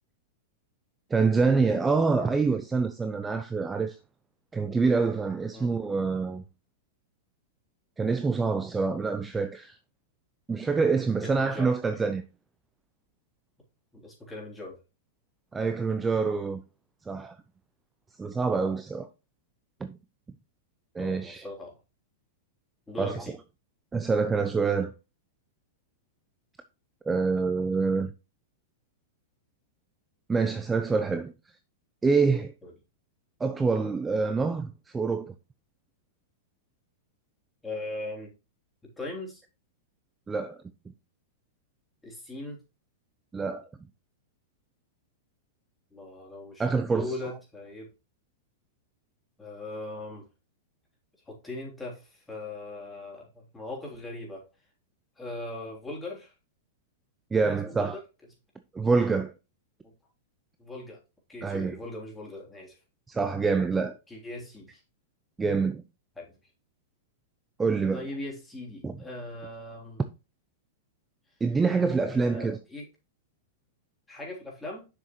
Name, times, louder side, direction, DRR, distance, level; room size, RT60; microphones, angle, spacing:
voice 1, 1.1-4.0 4.5-6.4 8.0-9.8 10.5-12.2 15.5-16.6 17.1-17.4 18.2-19.1 19.8-20.0 20.9-21.4 23.0-23.3 23.9-24.9 27.1-28.1 30.3-31.3 32.0-32.5 33.4-35.3 40.3-40.6 43.3-43.7 46.6-47.1 57.3-58.0 58.7-59.3 61.4-61.8 63.1-63.9 65.4-65.8 67.6-68.1 68.8-68.9 71.4-72.6, right 4 dB, 15° right, 0.5 m, -26 dB
voice 2, 11.2-11.7 13.9-14.8 21.0-21.8 22.9-23.3 32.6-32.7 37.6-38.3 38.8-39.4 42.0-42.6 45.9-47.9 49.4-50.2 51.2-54.5 55.2-56.3 57.5-58.0 59.8-59.9 60.6-61.0 61.3-62.8 64.1-64.8 66.2-66.3 67.9-70.0 72.1-72.8 74.1-74.9, left 2 dB, 10° left, 3.4 m, -39 dB
7.1 x 6.2 x 3.1 m
hypercardioid pair, 130°, 0 cm